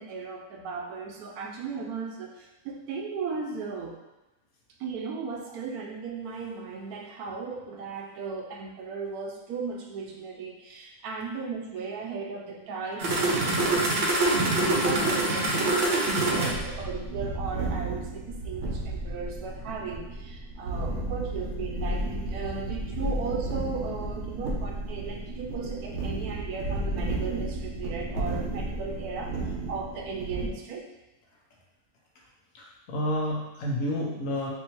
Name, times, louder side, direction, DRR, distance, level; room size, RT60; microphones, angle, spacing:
voice 1, 0.0-4.0 4.8-29.4 29.7-30.8, right 4 dB, 80° right, 1 dB, 1.1 m, -36 dB
sound 1, 13.0-30.5, right 2 dB, 55° right, 0.9 m, -29 dB
voice 2, 32.5-34.5, equal, 65° left, -3 dB, 1.1 m, -30 dB
4.5 x 2.9 x 2.9 m, 0.99 s
omnidirectional pair, 1.6 m